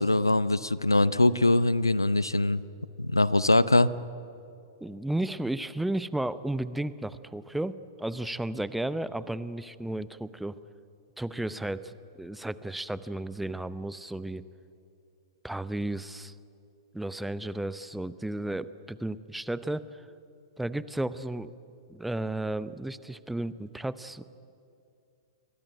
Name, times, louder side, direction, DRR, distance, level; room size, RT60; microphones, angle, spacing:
voice 1, 0.0-2.6 3.0-3.9, left 2 dB, 85° left, 18 dB, 0.7 m, -22 dB
voice 2, 4.8-10.6 11.2-14.4 15.4-16.3 16.9-19.9 20.6-21.5 21.9-24.2, right 1 dB, 5° right, 16 dB, 0.7 m, -33 dB
28.5 x 22.5 x 9.0 m, 2.5 s
figure-of-eight pair, 105°, 2 cm